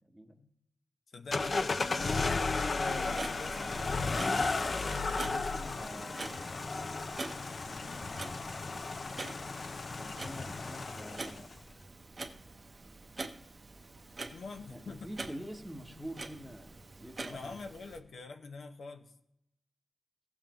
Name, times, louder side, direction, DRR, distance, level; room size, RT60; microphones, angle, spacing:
voice 1, 0.1-0.5 5.2-6.7 7.7-8.5 10.0-11.5 14.7-17.6, equal, ahead, 4 dB, 0.9 m, -47 dB
voice 2, 1.1-2.3 2.9-3.9 7.8-8.1 14.3-15.1 17.3-19.1, left 4 dB, 70° left, 6 dB, 0.8 m, -46 dB
sound 1, 1.3-11.5, left 3 dB, 40° left, 0.4 m, -34 dB
Clock, 2.8-18.0, right 3 dB, 35° right, 0.7 m, -46 dB
16.0 x 7.3 x 3.0 m, 0.79 s
wide cardioid pair, 150°, 0 cm